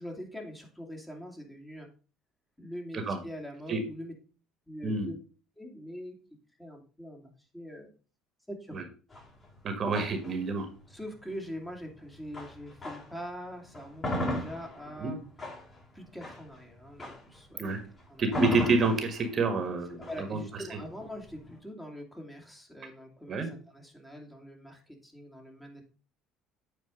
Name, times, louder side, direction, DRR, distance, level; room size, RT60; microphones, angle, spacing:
voice 1, 0.0-1.9 2.6-4.1 4.7-5.2 5.6-6.2 6.6-7.9 8.5-8.8 10.9-15.2 15.9-17.6 18.1-18.4 20.1-25.8, equal, 10° left, 2 dB, 2.4 m, -43 dB
sound 1, 9.1-13.2 13.6-21.6, left 1 dB, 25° left, 4.5 m, -38 dB
voice 2, 9.6-10.7 15.0-15.1 17.6-17.8 18.2-20.4 20.7-20.8 23.3-23.5, right 3 dB, 40° right, 7 dB, 1.6 m, -28 dB
8.4 x 4.5 x 5.2 m, 0.37 s
supercardioid pair, 95°, 0 cm